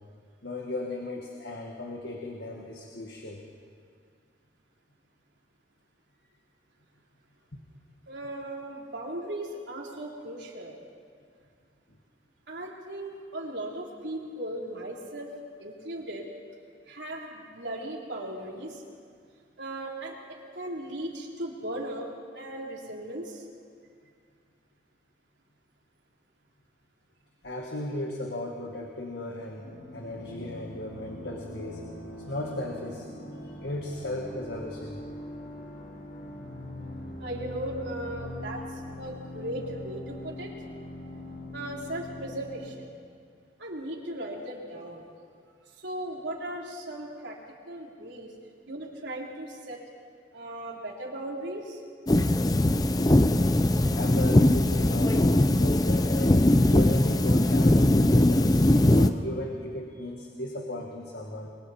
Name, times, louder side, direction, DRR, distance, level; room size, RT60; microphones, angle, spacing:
voice 1, 0.4-3.4 27.4-31.8 32.2-33.1 33.5-35.0 53.9-57.8 58.1-61.5, left 1 dB, 75° left, 0 dB, 1.8 m, -36 dB
voice 2, 8.1-10.8 12.5-16.3 16.9-18.8 19.6-23.5 37.2-40.5 41.5-42.9 43.6-45.1 45.7-47.4 47.7-48.3 48.7-49.8 50.3-51.8, right 1 dB, 80° right, -2 dB, 3.6 m, -37 dB
sound 1, 29.6-42.7, left 1 dB, 55° left, 4.7 m, -42 dB
sound 2, 52.1-59.1, left 1 dB, 20° left, 0.6 m, -21 dB
29.0 x 22.5 x 4.3 m, 2.2 s
head